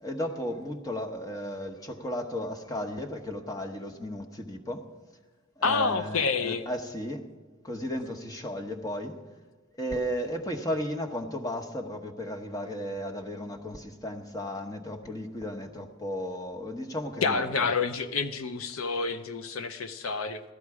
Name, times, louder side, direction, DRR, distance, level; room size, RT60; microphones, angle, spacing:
voice 1, 0.0-4.9 5.6-7.2 7.6-9.2 9.8-17.7, equal, 15° left, 4 dB, 1.1 m, -34 dB
voice 2, 5.6-6.6 17.2-20.4, left 4 dB, 85° left, 10 dB, 0.7 m, -28 dB
16.0 x 13.0 x 4.8 m, 1.3 s
head